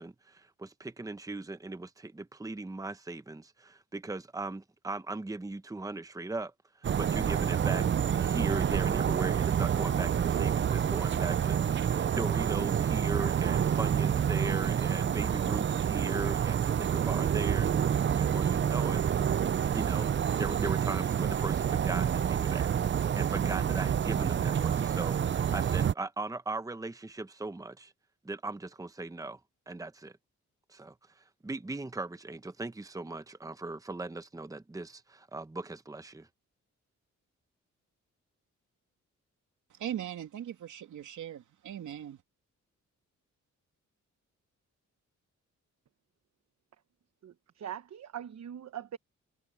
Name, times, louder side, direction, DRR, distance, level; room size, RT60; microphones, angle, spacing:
voice 1, 0.0-6.5 7.0-19.0 19.7-22.7 23.2-27.9 28.2-29.4 29.7-30.1 30.7-36.3, right 2 dB, 10° right, 1.0 m, -38 dB
sound 1, 6.8-25.9, right 8 dB, 40° right, 0.5 m, -28 dB
voice 2, 39.7-42.2, right 10 dB, 85° right, 2.7 m, -39 dB
voice 3, 47.2-49.0, right 10 dB, 65° right, 1.1 m, -42 dB
cardioid pair, 95°, 29 cm